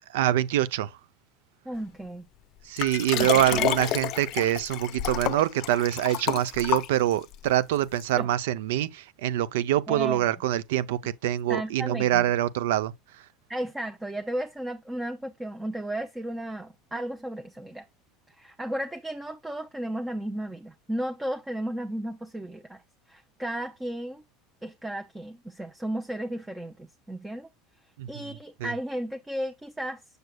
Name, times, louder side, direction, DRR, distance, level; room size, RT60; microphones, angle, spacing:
voice 1, 0.1-1.0 2.6-12.9 28.0-28.7, right 13 dB, 85° right, 0.6 m, -25 dB
voice 2, 1.6-2.3 3.2-3.7 8.2-8.3 9.9-10.2 11.5-12.2 13.5-17.9 18.4-22.8 23.1-24.2 24.6-27.5 28.1-30.0, right 1 dB, 10° right, 0.7 m, -34 dB
Liquid, 2.8-7.3 8.0-8.1, left 14 dB, 50° left, 0.6 m, -30 dB
6.7 x 6.3 x 2.3 m
supercardioid pair, 125°, 0 cm